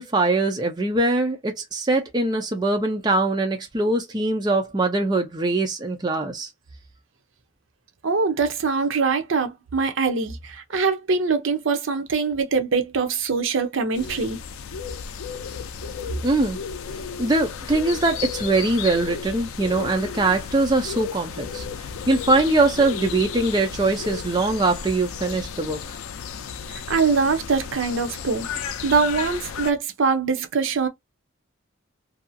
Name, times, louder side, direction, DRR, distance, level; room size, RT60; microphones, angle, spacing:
voice 1, 0.0-6.5 16.2-16.6 17.2-21.7 22.1-25.8, right 2 dB, 20° right, 0.4 m, -22 dB
voice 2, 8.0-14.4 26.7-30.9, right 4 dB, 70° right, 0.6 m, -23 dB
sound 1, 13.9-29.7, left 6 dB, 80° left, 0.4 m, -33 dB
2.7 x 2.4 x 2.6 m
head